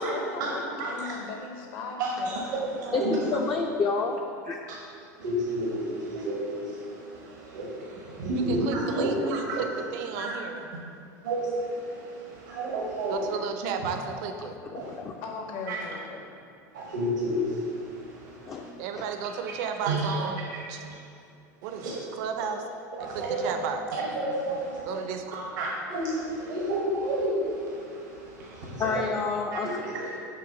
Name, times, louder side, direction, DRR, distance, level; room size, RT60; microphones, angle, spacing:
voice 1, 0.0-2.4 15.2-16.2 23.4-24.0 24.5-24.8, left 4 dB, 60° left, 2 dB, 0.9 m, -39 dB
voice 2, 0.8-1.1 2.0-3.3 5.2-9.8 10.1-10.4 11.2-13.4 14.7-14.9 15.7-15.8 16.7-19.0 19.8-20.2 20.8-21.0 21.6-22.0 23.0-25.0 25.3-29.0 29.5-30.2, right 1 dB, 80° right, -3 dB, 1.0 m, -31 dB
voice 3, 2.9-4.2 4.5-4.6 14.7-15.2 18.5-19.0 28.8-29.7, left 4 dB, 30° left, 2 dB, 0.4 m, -29 dB
voice 4, 8.5-10.6 13.1-14.6 18.8-20.4 20.7-20.8 21.6-22.6 23.1-23.8 24.8-25.2, right 7 dB, 65° right, 6 dB, 0.6 m, -33 dB
5.7 x 3.5 x 5.2 m, 2.4 s
hypercardioid pair, 100°, 10 cm